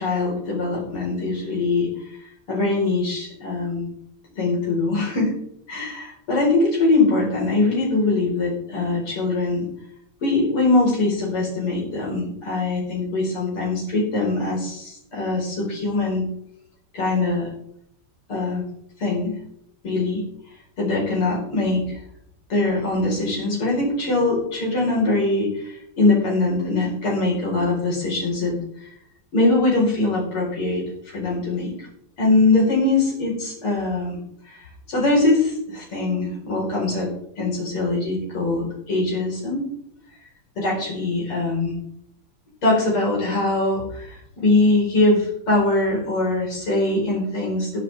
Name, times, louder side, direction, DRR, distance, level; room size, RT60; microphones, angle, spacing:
voice 1, 0.0-1.9 2.5-3.9 4.4-5.3 5.7-9.6 10.2-16.2 16.9-17.5 18.3-18.6 19.0-19.4 19.8-20.2 20.8-22.0 22.5-28.6 29.3-31.8 32.2-34.2 34.5-34.6 34.9-37.1 37.4-39.7 40.6-41.8 42.6-47.8, left 2 dB, 80° left, -3 dB, 5.7 m, -22 dB
21.0 x 7.7 x 3.6 m, 0.73 s
omnidirectional pair, 2.4 m